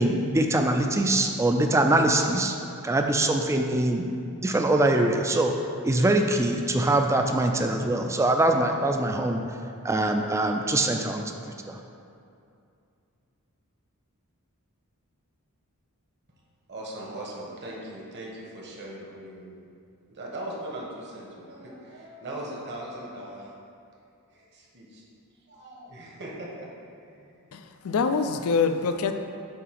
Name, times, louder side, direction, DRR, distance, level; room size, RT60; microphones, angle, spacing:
voice 1, 0.0-2.6 2.8-4.1 4.4-5.5 5.8-9.4 9.8-11.8, right 1 dB, 15° right, 4 dB, 0.4 m, -23 dB
voice 2, 16.7-19.7 20.1-23.5 24.3-25.0 25.5-26.7 27.0-27.3, right 1 dB, 50° right, -3 dB, 1.2 m, -39 dB
voice 3, 27.5-29.1, left 5 dB, 70° left, 8 dB, 0.4 m, -25 dB
7.8 x 2.8 x 5.8 m, 2.5 s
head